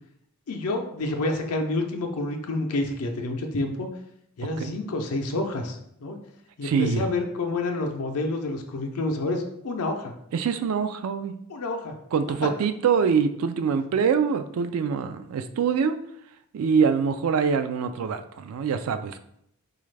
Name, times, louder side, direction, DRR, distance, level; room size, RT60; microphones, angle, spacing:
voice 1, 0.5-3.9 4.4-6.2 6.6-10.1 11.5-11.9 12.4-12.5, left 2 dB, 80° left, 4 dB, 0.5 m, -28 dB
voice 2, 6.6-7.0 10.3-11.4 12.1-16.0 16.5-19.2, right 6 dB, 70° right, 9 dB, 0.3 m, -24 dB
4.0 x 2.4 x 3.2 m, 0.74 s
head